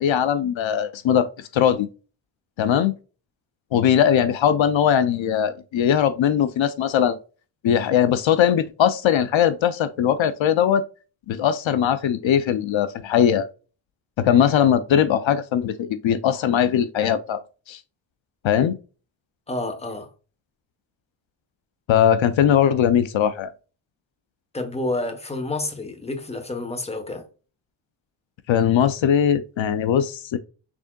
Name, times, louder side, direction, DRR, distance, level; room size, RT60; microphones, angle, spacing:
voice 1, 0.0-1.9 2.6-2.9 3.7-7.2 7.6-10.8 11.3-13.5 14.2-17.4 17.7-17.8 18.4-18.7 21.9-23.5 28.5-30.4, left 9 dB, 80° left, 0.6 m, -20 dB
voice 2, 19.5-20.1 24.5-27.2, left 2 dB, 15° left, 0.9 m, -29 dB
6.1 x 3.5 x 2.2 m
wide cardioid pair, 110°, 46 cm